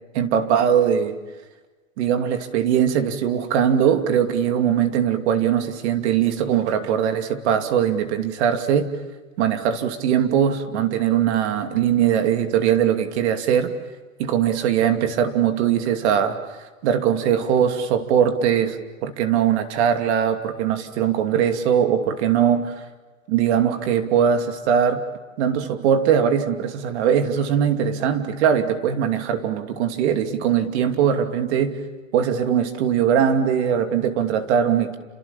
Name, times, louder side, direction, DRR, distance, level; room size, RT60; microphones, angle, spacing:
voice 1, 0.1-1.1 2.0-8.9 9.4-13.7 14.2-16.4 16.8-22.8 23.3-25.0 25.4-31.8 32.1-35.0, right 8 dB, 55° right, 6 dB, 2.8 m, -21 dB
29.5 x 27.5 x 7.2 m, 1.3 s
hypercardioid pair, 130°, 40 cm